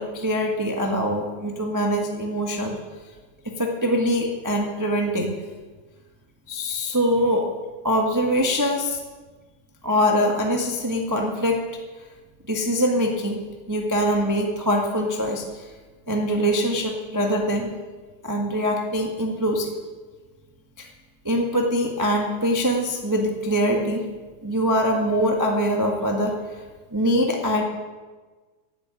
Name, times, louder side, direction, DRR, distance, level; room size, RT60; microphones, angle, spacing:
voice 1, 0.0-2.8 3.4-5.3 6.5-7.4 7.8-9.0 9.8-11.6 12.5-13.4 13.7-15.6 16.1-17.7 18.2-19.7 20.8-20.9 21.2-24.0 24.4-26.4 26.9-27.6, equal, 15° right, 0 dB, 0.8 m, -23 dB
11.5 x 9.7 x 9.1 m, 1.3 s
omnidirectional pair, 3.3 m